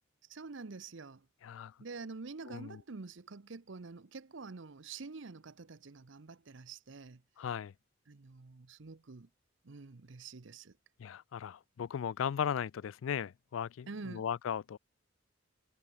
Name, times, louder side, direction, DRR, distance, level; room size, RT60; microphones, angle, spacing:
voice 1, 0.3-1.3 1.8-7.2 8.1-9.3 9.6-10.8 13.9-14.3, right 4 dB, 65° right, 0.8 m, -47 dB
voice 2, 2.5-2.8 7.4-7.7 11.0-14.8, left 8 dB, 80° left, 0.4 m, -37 dB
head